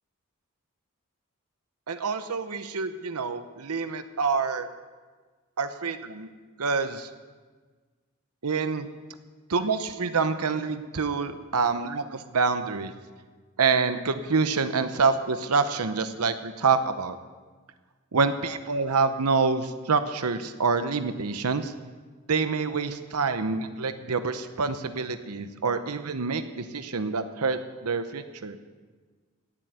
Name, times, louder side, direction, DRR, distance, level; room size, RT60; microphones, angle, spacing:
voice 1, 1.9-4.7 5.6-6.3 6.6-7.1 8.4-8.9 9.5-12.9 13.6-17.2 18.1-21.7 22.3-28.6, right 4 dB, 90° right, 10 dB, 0.9 m, -27 dB
17.5 x 7.8 x 9.5 m, 1.4 s
head